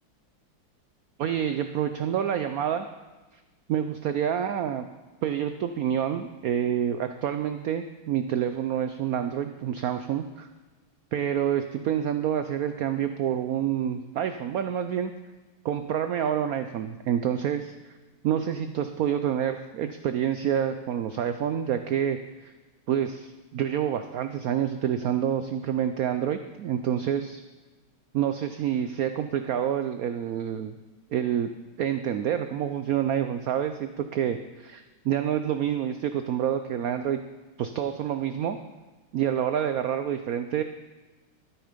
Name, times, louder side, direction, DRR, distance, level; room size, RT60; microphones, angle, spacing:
voice 1, 1.2-2.9 3.7-4.8 5.2-10.5 11.1-15.1 15.6-17.7 18.2-22.5 22.9-27.4 28.1-30.7 31.1-31.5 31.8-37.2 37.6-38.6 39.1-40.6, right 9 dB, 85° right, 9 dB, 0.7 m, -28 dB
13.0 x 8.9 x 5.1 m, 1.2 s
omnidirectional pair, 2.1 m